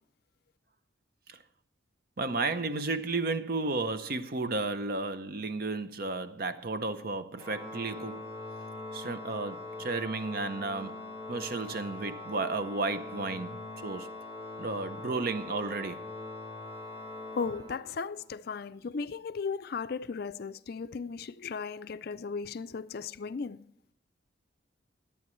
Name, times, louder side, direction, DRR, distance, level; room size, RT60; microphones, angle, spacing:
voice 1, 2.2-8.2 8.9-11.0 11.3-14.1 14.6-16.0, right 3 dB, 50° right, 0.6 m, -33 dB
Organ, 7.4-18.3, left 2 dB, 25° right, 2.3 m, -42 dB
voice 2, 17.3-23.6, left 5 dB, 50° left, 0.4 m, -36 dB
22.0 x 8.6 x 3.1 m
head